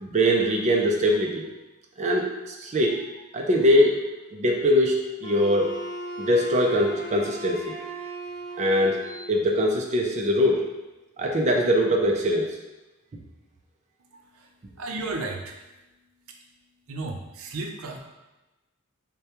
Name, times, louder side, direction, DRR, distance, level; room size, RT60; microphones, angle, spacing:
voice 1, 0.0-1.5 2.0-3.0 3.3-4.0 4.3-5.7 6.2-7.8 8.6-10.6 11.2-12.5, equal, 35° right, 0 dB, 0.4 m, -22 dB
Wind instrument woodwind instrument, 5.2-9.3, right 1 dB, 20° left, 0.9 m, -37 dB
voice 2, 14.1-14.5 14.8-15.6 16.9-18.0, right 2 dB, 80° right, 2 dB, 0.6 m, -34 dB
6.6 x 2.2 x 2.9 m, 1.1 s
head